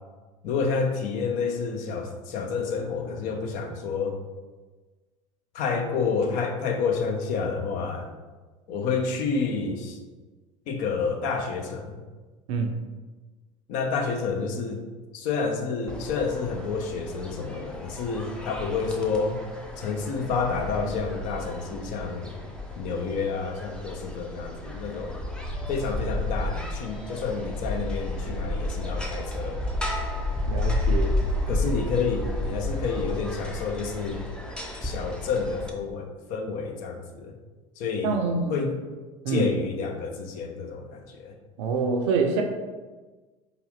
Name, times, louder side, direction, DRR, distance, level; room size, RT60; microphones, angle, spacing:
voice 1, 0.4-4.2 5.5-8.1 8.7-10.0 10.7-12.0 13.7-14.8 15.1-19.4 19.8-22.3 22.7-25.2 25.7-29.6 31.5-34.3 34.8-37.3 37.8-38.2 38.5-38.8 39.3-41.3, left 5 dB, 50° left, 4 dB, 0.7 m, -29 dB
sound 1, 15.9-35.7, left 1 dB, 5° left, 0.6 m, -32 dB
voice 2, 30.5-31.2 38.0-38.7 39.2-39.5 41.6-42.4, right 4 dB, 60° right, 3 dB, 0.6 m, -26 dB
4.8 x 2.5 x 3.1 m, 1.3 s
figure-of-eight pair, 75°, 17 cm